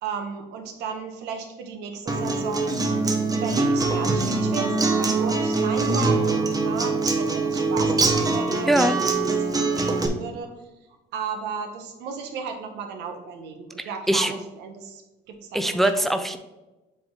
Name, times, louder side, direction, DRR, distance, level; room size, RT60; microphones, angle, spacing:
voice 1, 0.0-2.8 3.3-8.7 9.2-10.5 11.1-15.0 15.3-16.1, right 6 dB, 85° right, 5 dB, 1.1 m, -34 dB
Acoustic guitar, 2.1-10.1, right 3 dB, 20° right, 0.9 m, -23 dB
voice 2, 8.7-9.0 13.8-14.3 15.5-16.4, right 1 dB, ahead, 8 dB, 0.4 m, -22 dB
7.6 x 3.7 x 3.8 m, 1.1 s
cardioid pair, 110°, 17 cm